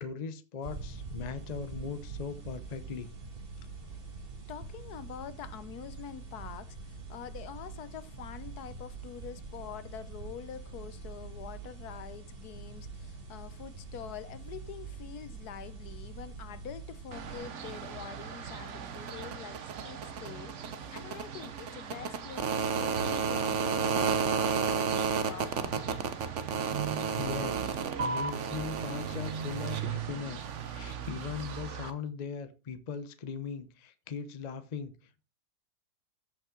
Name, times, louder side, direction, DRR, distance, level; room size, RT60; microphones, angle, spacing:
voice 1, 0.0-3.1 27.2-34.9, left 6 dB, 35° left, 0.7 m, -39 dB
sound 1, 0.6-17.4, right 4 dB, 35° right, 1.9 m, -44 dB
voice 2, 4.5-26.1, left 9 dB, 75° left, 1.3 m, -45 dB
sound 2, 17.1-31.9, right 6 dB, 55° right, 1.1 m, -33 dB
14.0 x 5.5 x 3.7 m
omnidirectional pair, 1.7 m